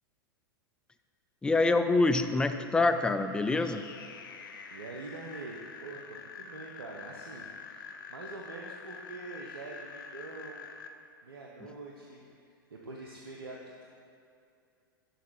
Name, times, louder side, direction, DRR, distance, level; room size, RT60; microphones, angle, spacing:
voice 1, 1.4-3.9, left 3 dB, 5° left, 9 dB, 0.3 m, -26 dB
sound 1, 3.2-10.9, left 5 dB, 70° left, 0.6 m, -46 dB
voice 2, 4.7-10.6 11.2-12.3 12.7-13.8, right 3 dB, 85° right, -2 dB, 0.7 m, -45 dB
6.4 x 5.8 x 4.7 m, 2.5 s
hypercardioid pair, 100°, 12 cm